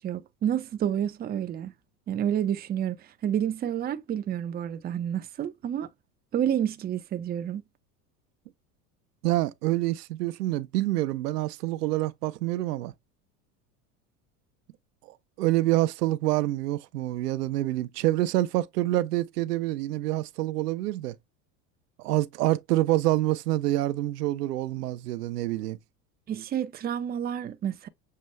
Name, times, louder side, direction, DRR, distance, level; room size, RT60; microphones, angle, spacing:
voice 1, 0.0-1.7 2.1-5.9 6.3-7.6 26.3-27.9, right 10 dB, 20° right, 0.5 m, -29 dB
voice 2, 9.2-12.9 15.4-21.2 22.0-25.8, right 16 dB, 85° right, 0.7 m, -27 dB
6.6 x 2.3 x 3.1 m
hypercardioid pair, 95°, 46 cm